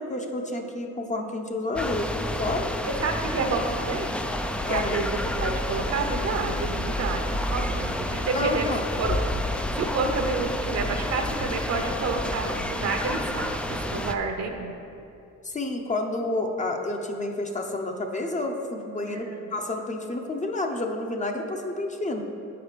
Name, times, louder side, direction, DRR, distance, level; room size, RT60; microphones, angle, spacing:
voice 1, 0.0-2.7 4.6-5.0 8.3-8.8 15.4-22.2, left 2 dB, 25° left, 3 dB, 0.7 m, -30 dB
sound 1, 1.8-14.1, left 1 dB, 5° left, 0.3 m, -29 dB
voice 2, 2.8-4.2 4.6-8.7 9.0-9.2 9.5-14.7 19.1-19.4, right 4 dB, 60° right, 4 dB, 0.9 m, -29 dB
7.5 x 4.9 x 4.9 m, 2.7 s
cardioid pair, 90°, 30 cm